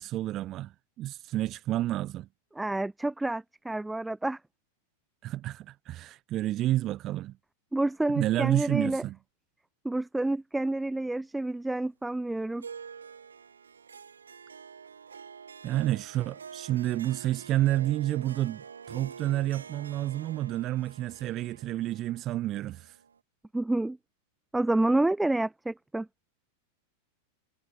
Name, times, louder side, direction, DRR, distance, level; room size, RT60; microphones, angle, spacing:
voice 1, 0.0-2.3 5.2-7.3 8.2-9.2 15.6-23.0, right 14 dB, 35° right, 2.2 m, -30 dB
voice 2, 2.6-4.4 7.7-9.0 9.8-12.7 23.5-24.0 24.5-26.1, right 2 dB, 5° right, 1.8 m, -28 dB
Harp, 12.6-23.2, right 6 dB, 70° right, 4.2 m, -47 dB
figure-of-eight pair, 90°, 0 cm